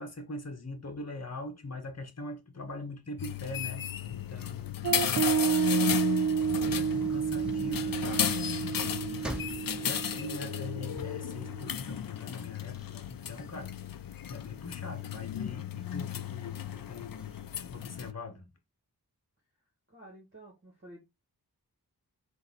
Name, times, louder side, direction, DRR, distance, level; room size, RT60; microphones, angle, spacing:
voice 1, 0.0-4.8 6.4-8.4 8.7-13.7 14.3-17.4 17.7-18.4, left 2 dB, 40° left, 1.1 m, -42 dB
sound 1, 3.2-18.1, left 8 dB, 60° left, 0.5 m, -34 dB
sound 2, 4.8-11.7, right 7 dB, 50° right, 0.5 m, -31 dB
voice 2, 5.2-6.8 19.9-21.0, equal, 30° right, 1.7 m, -51 dB
sound 3, 6.2-11.4 11.9-12.0 12.3-14.4 14.9-15.5 16.1-16.2 16.5-16.6 17.0-17.6, equal, ahead, 0.8 m, -44 dB
3.9 x 2.7 x 3.9 m
cardioid pair, 45°, 39 cm